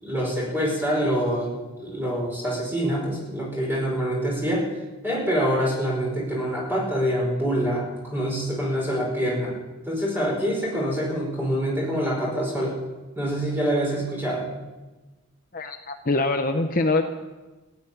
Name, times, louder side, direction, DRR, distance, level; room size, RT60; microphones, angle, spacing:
voice 1, 0.0-4.7 5.0-9.5 9.9-12.8 13.2-14.5, equal, 10° right, -2 dB, 5.2 m, -25 dB
voice 2, 15.5-17.0, left 2 dB, 40° left, 5 dB, 0.8 m, -24 dB
15.5 x 9.5 x 9.7 m, 1.2 s
head